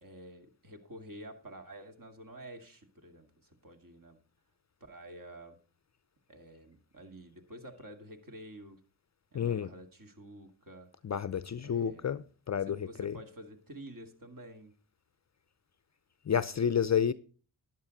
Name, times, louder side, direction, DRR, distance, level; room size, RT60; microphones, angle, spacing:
voice 1, 0.0-4.2 4.8-5.6 6.3-8.8 9.3-10.9 11.6-12.2 12.6-14.7, right 1 dB, 45° right, 2.3 m, -49 dB
voice 2, 9.3-9.7 11.0-13.1 16.3-17.1, left 8 dB, 35° left, 0.6 m, -30 dB
11.0 x 9.7 x 4.0 m
supercardioid pair, 45°, 48 cm